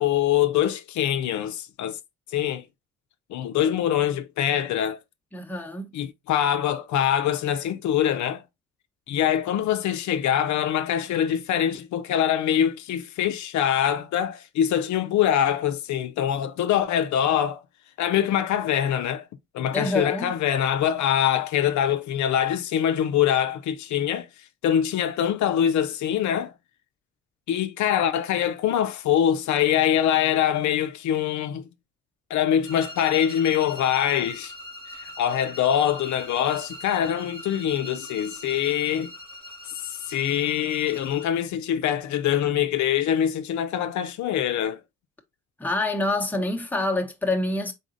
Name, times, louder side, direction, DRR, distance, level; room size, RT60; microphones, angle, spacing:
voice 1, 0.0-2.0 2.3-2.6 3.3-5.0 5.9-8.4 9.1-17.6 18.0-19.3 19.5-26.5 27.5-31.7 32.3-34.5 34.9-39.1 39.9-44.8, left 10 dB, 70° left, 0.5 m, -24 dB
voice 2, 5.3-5.9 19.7-20.3 45.6-47.7, left 2 dB, 5° left, 0.9 m, -26 dB
sound 1, 32.6-41.4, left 1 dB, 45° right, 2.0 m, -41 dB
4.0 x 3.8 x 2.5 m
cardioid pair, 90°, 30 cm